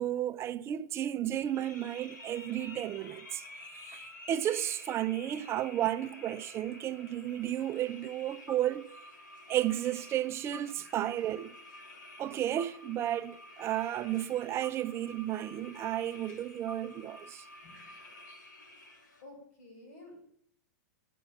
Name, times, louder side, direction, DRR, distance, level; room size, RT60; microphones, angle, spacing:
voice 1, 0.0-3.4 3.9-8.9 9.5-11.5 12.2-17.4, right 12 dB, 25° right, 0.6 m, -33 dB
sound 1, 1.4-19.2, left 1 dB, 85° left, 2.4 m, -50 dB
voice 2, 19.2-20.3, left 2 dB, 60° left, 7.0 m, -52 dB
12.0 x 10.0 x 7.2 m
hypercardioid pair, 135°, 10 cm